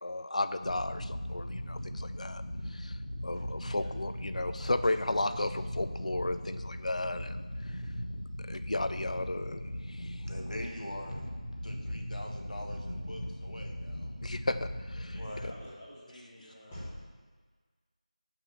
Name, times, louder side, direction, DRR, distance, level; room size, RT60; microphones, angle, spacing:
voice 1, 0.0-7.8 8.5-10.2 14.2-15.2, left 2 dB, 65° left, 11 dB, 0.4 m, -34 dB
sound 1, 0.6-15.7, equal, 45° left, 1.1 m, -39 dB
voice 2, 3.3-3.9 15.0-17.2, equal, 5° left, -16 dB, 0.9 m, -48 dB
voice 3, 10.2-11.3 11.6-14.1 15.1-15.7 16.1-16.5, left 1 dB, 85° left, 1 dB, 1.6 m, -44 dB
6.0 x 5.6 x 6.7 m, 1.5 s
figure-of-eight pair, 175°, 4 cm